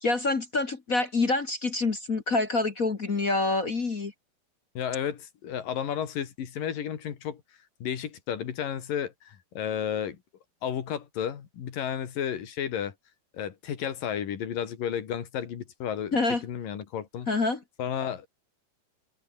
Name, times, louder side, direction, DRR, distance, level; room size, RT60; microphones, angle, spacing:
voice 1, 0.0-4.1 16.1-16.4 17.3-17.6, left 3 dB, 35° left, 1.4 m, -26 dB
voice 2, 4.8-7.4 7.8-10.2 10.6-12.9 13.3-16.2 16.4-17.3 17.8-18.3, left 9 dB, 85° left, 4.1 m, -32 dB
omnidirectional pair, 3.8 m